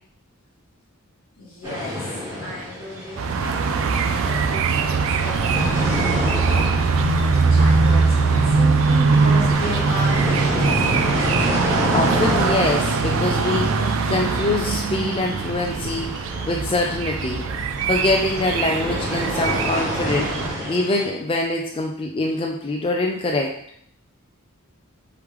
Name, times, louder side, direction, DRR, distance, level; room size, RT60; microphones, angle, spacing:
voice 1, 1.4-6.8 7.2-10.9, equal, 65° left, -6 dB, 1.7 m, -35 dB
sound 1, 1.6-21.0, left 1 dB, 15° right, 1.5 m, -30 dB
sound 2, 3.2-20.5, right 4 dB, 65° right, 0.4 m, -21 dB
sound 3, 5.3-12.6, equal, 35° right, 0.7 m, -37 dB
voice 2, 11.9-17.5 17.9-23.5, left 2 dB, 25° left, 1 dB, 0.3 m, -24 dB
4.8 x 3.2 x 3.4 m, 0.66 s
head